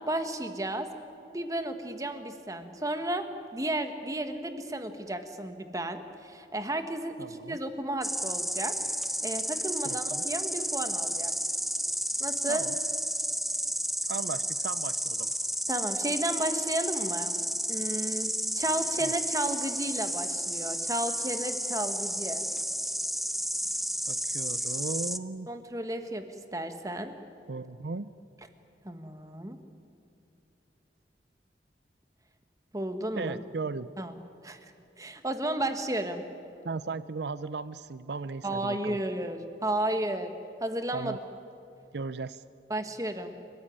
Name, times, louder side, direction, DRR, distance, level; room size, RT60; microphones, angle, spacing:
voice 1, 0.1-0.9 1.3-3.3 3.5-8.7 9.2-11.3 12.2-12.6 15.7-17.3 17.7-22.4 25.5-26.2 26.5-27.1 28.8-29.6 32.7-33.4 34.0-34.1 34.4-34.6 35.0-36.2 38.4-40.3 40.6-41.2 42.7-43.3, right 1 dB, 20° right, 8 dB, 1.4 m, -33 dB
voice 2, 7.2-7.6 9.8-10.2 12.5-12.8 14.1-15.3 19.0-19.1 24.1-25.5 27.5-28.1 33.2-33.9 36.6-39.0 40.9-41.2 41.9-42.4, right 4 dB, 65° right, 15 dB, 0.5 m, -36 dB
Insect, 8.0-25.2, equal, ahead, 0.5 m, -32 dB
30.0 x 14.5 x 10.0 m, 2.7 s
head